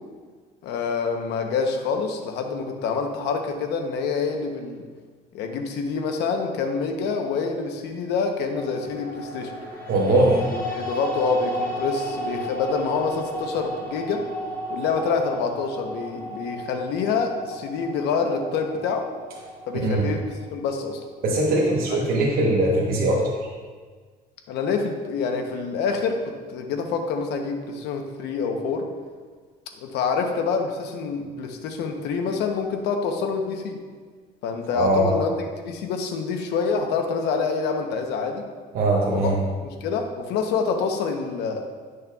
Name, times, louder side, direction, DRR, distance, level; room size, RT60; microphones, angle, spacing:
voice 1, 0.6-4.8 5.3-9.5 10.0-10.4 10.7-14.3 14.7-19.1 19.7-21.0 24.5-28.9 29.8-33.8 34.4-38.5 39.0-39.3 39.6-41.6, left 5 dB, 85° left, 4 dB, 0.8 m, -26 dB
sound 1, 8.5-20.8, equal, 15° left, 1.9 m, -34 dB
voice 2, 9.9-10.4 19.8-20.0 21.2-23.2 34.7-35.1 38.7-39.4, right 2 dB, 60° right, -3 dB, 1.1 m, -21 dB
10.5 x 6.3 x 2.3 m, 1.5 s
cardioid pair, 110°, 17 cm